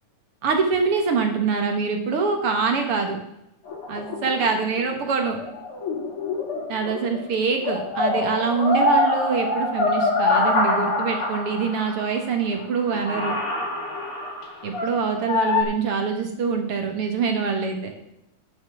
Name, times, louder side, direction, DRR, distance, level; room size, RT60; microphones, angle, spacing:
voice 1, 0.4-3.2 3.9-5.4 6.7-13.4 14.6-17.9, right 5 dB, 55° right, 4 dB, 1.9 m, -24 dB
sound 1, 3.7-7.2 7.5-12.0 12.6-12.7 12.9-15.6, left 2 dB, 45° left, 3.2 m, -25 dB
10.0 x 7.4 x 6.0 m, 0.82 s
omnidirectional pair, 3.7 m